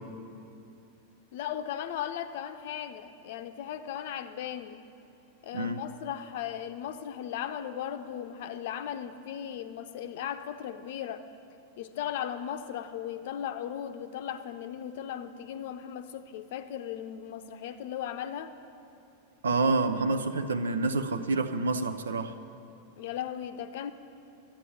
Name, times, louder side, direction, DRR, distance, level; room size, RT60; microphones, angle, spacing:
voice 1, 1.3-4.8 5.4-11.3 11.8-18.5 23.0-23.9, left 10 dB, 55° left, 0.6 m, -37 dB
voice 2, 19.4-22.3, right 3 dB, 70° right, 0.6 m, -28 dB
12.5 x 8.9 x 9.1 m
figure-of-eight pair, 90°, 0 cm